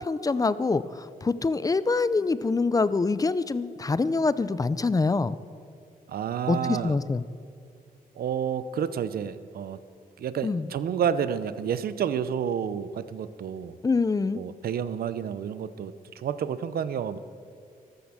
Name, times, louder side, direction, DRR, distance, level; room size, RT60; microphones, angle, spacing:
voice 1, 0.0-5.3 6.5-7.2 10.4-10.7 13.8-14.4, left 3 dB, 25° left, 15 dB, 0.5 m, -25 dB
voice 2, 6.1-6.9 8.2-9.8 10.2-13.8 14.3-17.2, right 8 dB, 80° right, 14 dB, 0.7 m, -30 dB
14.0 x 12.5 x 7.5 m, 2.3 s
cardioid pair, 105°, 15 cm